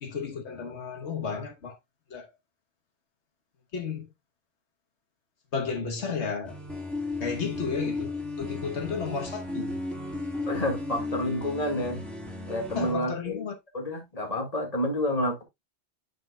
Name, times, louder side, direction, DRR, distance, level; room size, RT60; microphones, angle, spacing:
voice 1, 0.0-1.7 2.1-2.3 3.7-4.1 5.5-6.6 7.2-9.8 12.7-13.5, left 5 dB, 80° left, 1.4 m, -33 dB
sound 1, 6.4-12.9, left 2 dB, ahead, 1.6 m, -35 dB
voice 2, 10.5-12.0 12.5-13.4 13.7-15.4, left 1 dB, 35° left, 1.8 m, -29 dB
8.9 x 5.1 x 2.2 m
omnidirectional pair, 1.1 m